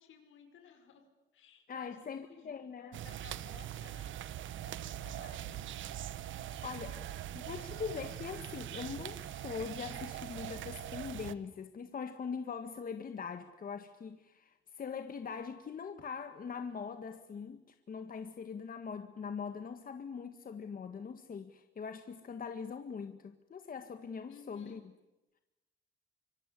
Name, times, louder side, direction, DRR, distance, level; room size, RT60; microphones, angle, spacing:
voice 1, 0.0-4.3 4.6-5.7 24.3-24.8, left 7 dB, 80° left, 5.2 m, -58 dB
voice 2, 1.7-3.0 6.2-24.8, left 6 dB, 45° left, 1.8 m, -42 dB
sound 1, 2.9-11.3, right 11 dB, 75° right, 1.2 m, -42 dB
25.5 x 23.5 x 10.0 m
cardioid pair, 90°, 20 cm